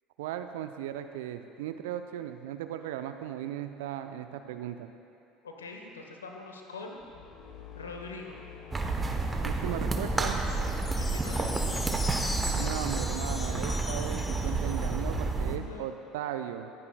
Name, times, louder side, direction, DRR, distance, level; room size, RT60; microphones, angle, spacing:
voice 1, 0.2-4.9 9.4-10.4 12.5-16.7, right 11 dB, 70° right, 8 dB, 0.5 m, -37 dB
voice 2, 5.4-7.0 7.7-8.4 11.0-11.8 15.5-15.9, left 3 dB, 80° left, 2 dB, 1.2 m, -43 dB
sound 1, 7.0-12.2, left 7 dB, 50° left, 1.2 m, -47 dB
sound 2, 8.7-15.6, right 3 dB, 20° right, 1.0 m, -30 dB
sound 3, 10.5-15.2, left 2 dB, 15° left, 0.8 m, -39 dB
23.5 x 9.6 x 2.3 m, 2.7 s
figure-of-eight pair, 65°, 0 cm